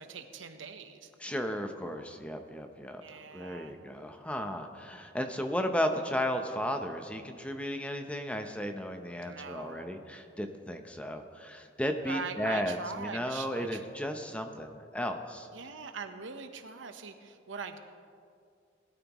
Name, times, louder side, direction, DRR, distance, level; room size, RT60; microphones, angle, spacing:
voice 1, 0.0-1.1 3.0-3.8 9.2-10.1 12.0-13.8 15.5-17.8, right 4 dB, 80° right, 7 dB, 1.0 m, -42 dB
voice 2, 1.2-3.0 3.3-15.5, equal, 5° left, 5 dB, 0.7 m, -34 dB
20.0 x 13.0 x 3.1 m, 2.3 s
head